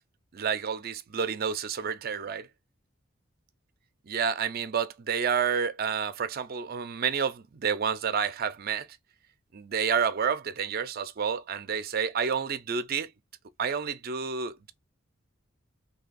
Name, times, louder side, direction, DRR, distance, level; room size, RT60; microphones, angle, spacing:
voice 1, 0.3-2.5 4.1-8.9 9.5-13.1 13.6-14.7, right 6 dB, 50° right, 0.5 m, -29 dB
3.3 x 2.8 x 3.9 m
head